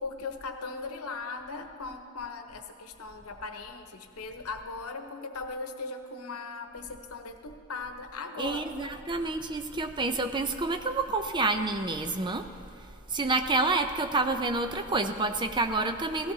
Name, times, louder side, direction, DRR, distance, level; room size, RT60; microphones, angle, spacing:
voice 1, 0.0-9.0, left 3 dB, 90° left, 6 dB, 0.9 m, -39 dB
voice 2, 8.4-12.5 12.8-16.3, right 3 dB, 20° right, 7 dB, 0.5 m, -28 dB
16.5 x 14.5 x 2.8 m, 2.6 s
head